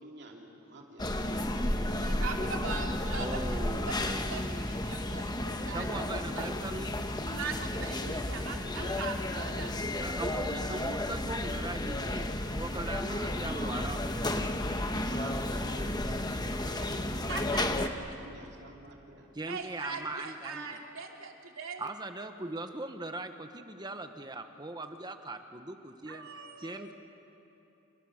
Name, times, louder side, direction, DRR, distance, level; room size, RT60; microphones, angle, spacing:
voice 1, 0.0-2.3 8.8-8.9 13.0-14.0 15.0-19.3, right 2 dB, 55° right, 0 dB, 3.0 m, -49 dB
sound 1, 1.0-17.9, left 1 dB, 20° left, 1.2 m, -33 dB
voice 2, 1.9-3.6 3.8-6.8 7.2-9.7 16.8-17.0 17.3-17.6 19.5-21.9 26.1-26.9, right 4 dB, 85° right, 1 dB, 3.1 m, -41 dB
voice 3, 3.1-4.8 5.7-6.9 10.0-14.0 14.3-14.5 19.3-20.7 21.8-26.3 26.6-26.9, right 2 dB, 20° right, 7 dB, 1.2 m, -40 dB
30.0 x 29.0 x 6.5 m, 2.8 s
head